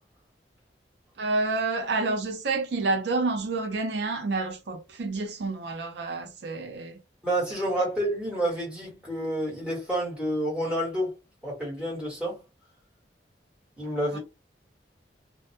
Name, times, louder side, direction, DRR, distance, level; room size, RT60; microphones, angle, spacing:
voice 1, 1.2-7.0 14.1-14.2, right 3 dB, 70° right, 0.5 m, -29 dB
voice 2, 7.2-11.1 11.4-12.4 13.8-14.2, right 1 dB, 5° right, 1.1 m, -29 dB
2.2 x 2.0 x 2.8 m
head